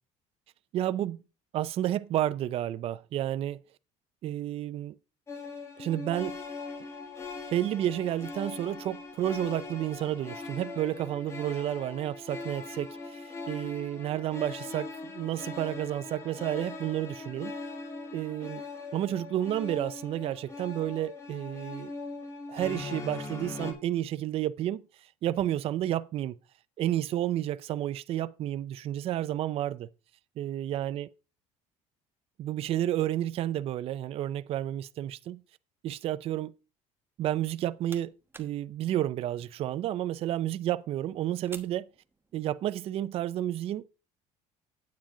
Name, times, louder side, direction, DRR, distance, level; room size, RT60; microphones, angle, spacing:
voice 1, 0.7-1.2 1.5-3.6 4.2-4.9 5.8-6.4 7.5-17.5 18.1-18.6 18.9-21.9 22.5-24.8 25.2-26.4 26.8-29.9 30.4-31.1 32.4-35.4 35.8-36.5 37.2-38.1 38.4-41.9 42.3-43.8, right 12 dB, 45° right, 0.5 m, -31 dB
sound 1, 5.3-23.7, left 3 dB, 20° left, 2.1 m, -41 dB
sound 2, 37.4-42.7, right 4 dB, 15° right, 1.0 m, -54 dB
9.5 x 8.8 x 3.8 m
cardioid pair, 150°, 14 cm